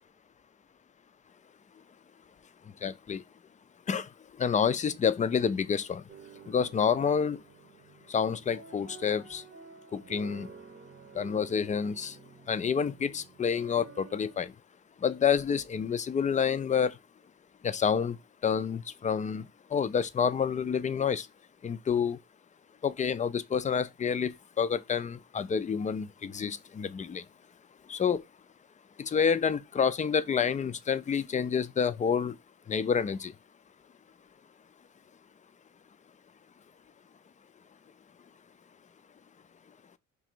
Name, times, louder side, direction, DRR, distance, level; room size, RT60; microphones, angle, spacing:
voice 1, 2.8-3.2 3.9-4.1 4.4-6.0 6.5-7.4 8.1-9.4 9.9-10.5 11.1-12.1 12.5-14.5 15.0-16.9 17.6-18.2 18.4-19.4 19.7-21.3 21.6-22.2 22.8-27.2 27.9-28.2 29.0-32.3 32.7-33.3, left 7 dB, 25° left, 0.3 m, -28 dB
sound 1, 6.1-14.4, right 5 dB, 40° right, 0.8 m, -51 dB
3.0 x 2.5 x 4.4 m
cardioid pair, 90°, 30 cm